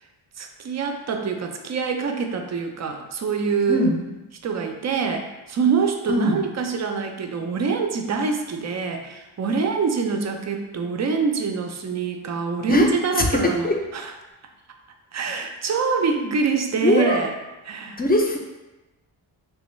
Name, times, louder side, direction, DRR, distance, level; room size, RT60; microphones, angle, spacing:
voice 1, 0.4-3.9 4.4-14.1 15.1-17.3 17.6-18.0, right 5 dB, 35° right, 4 dB, 0.5 m, -25 dB
voice 2, 3.7-4.0 6.1-6.4 12.7-13.8 16.1-16.3 16.8-17.2 18.0-18.4, left 1 dB, 20° left, 1 dB, 0.5 m, -21 dB
3.3 x 2.2 x 3.1 m, 1.0 s
cardioid pair, 60°, 47 cm